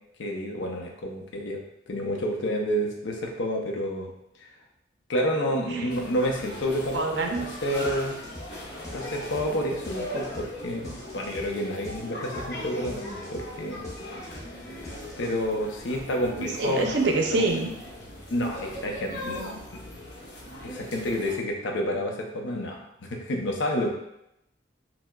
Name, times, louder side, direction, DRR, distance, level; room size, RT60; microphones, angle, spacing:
voice 1, 0.2-1.6 1.9-4.1 4.4-4.5 5.1-8.2 8.9-13.9 15.2-17.0 17.3-17.5 18.3-19.4 19.7-19.8 20.6-23.9, equal, 90° left, 1 dB, 0.6 m, -29 dB
voice 2, 5.6-5.9 6.9-7.5 16.3-17.7 19.1-19.6, right 3 dB, 70° right, 2 dB, 0.5 m, -27 dB
sound 1, 5.9-21.4, left 1 dB, 60° left, 0.8 m, -39 dB
sound 2, 7.3-7.5 7.8-15.6, left 1 dB, 20° left, 0.6 m, -43 dB
4.4 x 2.0 x 2.2 m, 0.84 s
head